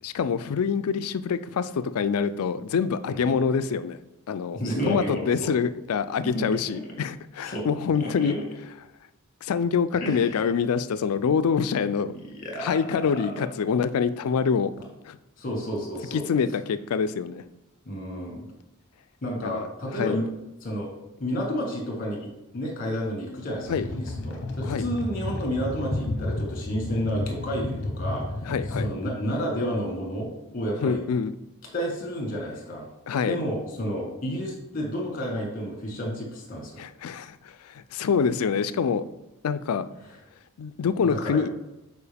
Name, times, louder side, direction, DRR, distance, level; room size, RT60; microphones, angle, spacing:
voice 1, 0.0-4.0 4.3-8.3 9.4-12.1 12.6-14.7 15.1-15.2 16.1-17.4 19.4-19.7 20.0-20.2 23.7-23.8 24.6-24.9 28.4-28.9 30.8-31.3 33.1-33.4 36.8-37.4 37.6-39.0 39.4-39.9 40.6-41.5, left 6 dB, 80° left, 12 dB, 0.4 m, -25 dB
voice 2, 3.1-3.4 4.5-5.5 6.2-6.8 7.4-7.7 7.9-8.4 10.0-10.4 12.1-12.8 13.1-13.5 15.4-16.2 17.9-18.4 19.2-20.3 20.6-20.9 21.2-28.2 28.8-31.0 31.7-32.8 33.3-36.8 41.0-41.4, equal, 40° left, 0 dB, 1.7 m, -31 dB
sound 1, 23.7-28.9, left 2 dB, 55° left, 0.9 m, -31 dB
6.9 x 4.6 x 3.4 m, 0.93 s
head